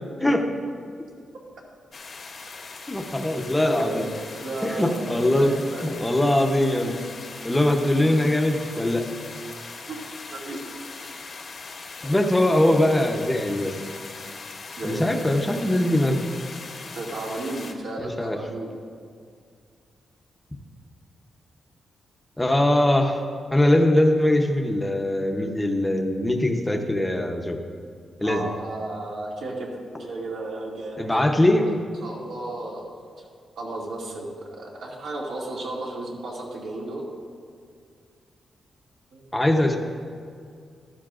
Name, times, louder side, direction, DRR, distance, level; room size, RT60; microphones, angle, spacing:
sound 1, 1.9-17.7, left 4 dB, 40° left, 0.8 m, -40 dB
voice 1, 2.9-4.1 4.6-5.5 5.8-7.0 7.4-9.1 12.0-13.8 14.8-16.2 18.0-18.4 22.4-23.2 23.5-27.6 28.2-28.5 31.0-31.7 39.3-39.8, left 1 dB, 5° left, 3 dB, 0.7 m, -21 dB
voice 2, 3.6-5.8 9.9-10.0 10.3-10.6 11.0-11.1 14.8-15.0 16.9-18.7 28.2-29.7 30.0-31.2 31.6-31.7 32.0-32.9 33.2-33.3 33.6-37.0 39.1-39.2, right 2 dB, 70° right, -3 dB, 2.2 m, -34 dB
15.0 x 12.0 x 2.5 m, 2.2 s
wide cardioid pair, 175°, 0 cm